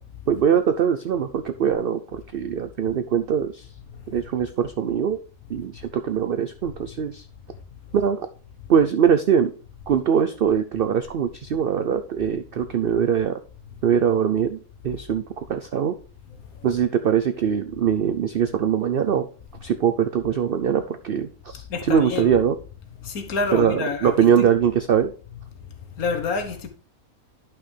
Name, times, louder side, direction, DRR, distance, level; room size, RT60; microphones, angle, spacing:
voice 1, 0.3-3.7 4.1-5.2 5.5-7.3 7.9-8.3 8.7-9.5 9.9-13.4 13.8-16.0 16.6-19.3 19.6-22.6 23.5-25.1, right 8 dB, 90° right, 0.5 m, -22 dB
voice 2, 21.7-22.4 23.0-24.5 26.0-26.7, left 4 dB, 70° left, 1.5 m, -27 dB
10.5 x 5.8 x 3.3 m
omnidirectional pair, 1.6 m